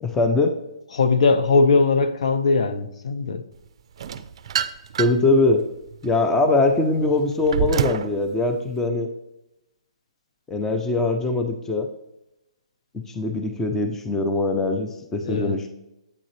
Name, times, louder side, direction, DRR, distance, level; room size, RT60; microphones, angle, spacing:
voice 1, 0.0-0.5 5.0-5.6 6.0-9.1 10.5-11.9 12.9-15.7, left 2 dB, 10° left, 0.5 m, -22 dB
voice 2, 0.9-3.4 15.2-15.6, left 4 dB, 65° left, 0.7 m, -20 dB
sound 1, 4.0-5.3 5.9-8.1, right 8 dB, 55° right, 0.4 m, -27 dB
8.6 x 3.8 x 3.2 m
hypercardioid pair, 145°, 4 cm